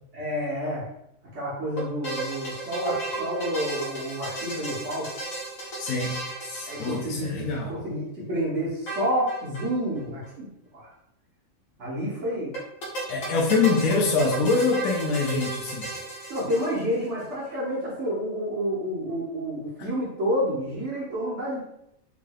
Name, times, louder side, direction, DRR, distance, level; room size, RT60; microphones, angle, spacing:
voice 1, 0.1-0.9 1.3-5.1 6.7-10.5 10.7-10.9 11.8-12.5 16.3-21.6, equal, 60° right, -7 dB, 1.3 m, -29 dB
sound 1, 1.8-7.5 8.9-9.7 10.0-10.1 10.2-10.3 12.5-17.1, right 2 dB, 70° left, 1.4 m, -34 dB
voice 2, 5.8-6.2 6.4-7.7 13.1-15.9, left 4 dB, 90° left, -1 dB, 1.1 m, -24 dB
3.7 x 3.2 x 2.3 m, 0.79 s
omnidirectional pair, 1.4 m